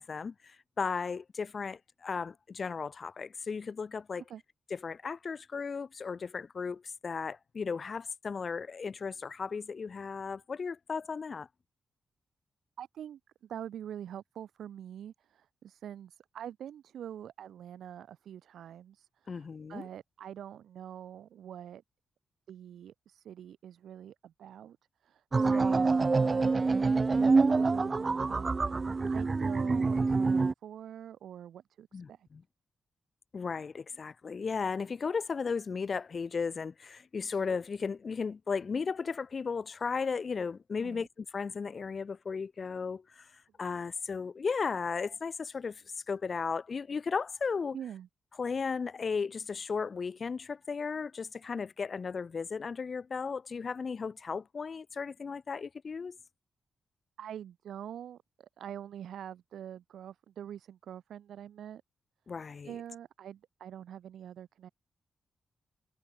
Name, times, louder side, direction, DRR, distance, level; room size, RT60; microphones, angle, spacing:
voice 1, 0.0-4.2 4.7-11.5 19.3-19.9 25.4-25.8 31.9-32.4 33.3-43.3 43.6-47.8 48.4-56.2 62.3-62.7, left 5 dB, 35° left, 3.2 m, -35 dB
voice 2, 12.8-21.8 22.5-24.8 25.0-26.5 27.1-32.3 40.8-41.1 47.7-48.1 57.2-61.8 62.6-64.7, right 10 dB, 90° right, 3.9 m, -45 dB
sound 1, 25.3-30.5, right 4 dB, 25° right, 0.4 m, -26 dB
wide cardioid pair, 155°, 0 cm